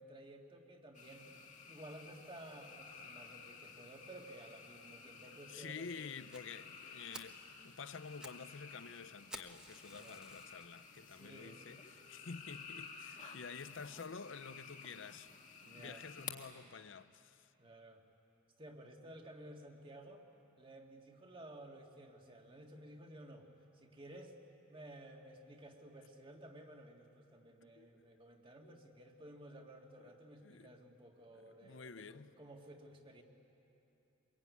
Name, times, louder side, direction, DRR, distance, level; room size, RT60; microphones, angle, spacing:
voice 1, 0.0-6.0 9.9-10.2 11.1-11.6 15.6-16.0 17.6-18.0 18.6-20.2 20.6-23.5 23.7-24.3 24.7-33.2, right 1 dB, 25° right, 2.0 m, -54 dB
sound 1, 0.9-16.3, left 5 dB, 40° left, 1.9 m, -53 dB
voice 2, 5.5-15.3 15.6-17.5 27.8-28.2 28.6-28.8 30.4-30.7 31.3-32.3, left 5 dB, 65° left, 0.7 m, -50 dB
Fire, 6.3-6.4 6.8-6.9 7.1-7.4 7.9-8.4 8.7-8.8 9.3-10.6 11.2-11.3 11.9-12.0 12.2-12.3 12.7-12.8, right 1 dB, 5° right, 1.2 m, -52 dB
24.5 x 21.5 x 9.5 m
head